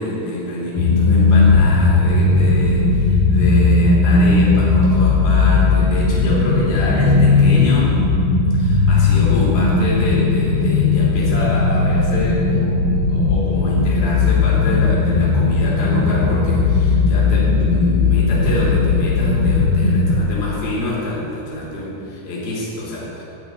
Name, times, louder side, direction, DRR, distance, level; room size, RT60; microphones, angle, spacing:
voice 1, 0.0-8.0 8.5-12.8 13.1-23.2, left 1 dB, 30° left, -6 dB, 3.2 m, -26 dB
sound 1, 0.8-20.2, left 3 dB, 65° left, 2.6 m, -16 dB
12.5 x 6.1 x 9.5 m, 2.7 s
omnidirectional pair, 4.8 m